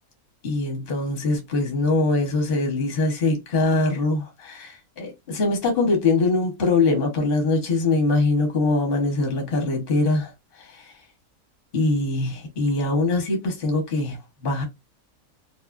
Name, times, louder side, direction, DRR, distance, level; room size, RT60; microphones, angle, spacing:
voice 1, 0.4-10.3 10.7-10.9 11.7-14.6, left 3 dB, 45° left, 0.9 m, -23 dB
2.4 x 2.4 x 2.3 m
omnidirectional pair, 1.6 m